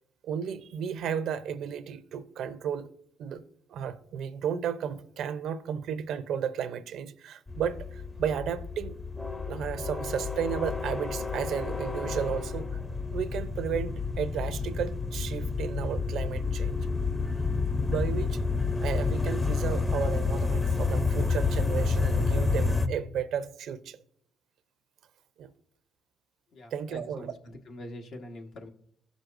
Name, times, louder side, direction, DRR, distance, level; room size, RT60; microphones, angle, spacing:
voice 1, 0.2-2.9 3.2-3.4 3.7-8.9 9.5-12.7 13.1-16.8 17.4-17.5 17.9-18.4 18.8-24.0 25.4-25.5 26.7-27.3, right 8 dB, 75° right, 0.6 m, -33 dB
sound 1, 7.5-22.9, left 4 dB, 20° left, 0.7 m, -29 dB
voice 2, 26.5-28.7, left 1 dB, 70° left, 1.4 m, -44 dB
15.5 x 6.2 x 2.6 m
cardioid pair, 90°, 0 cm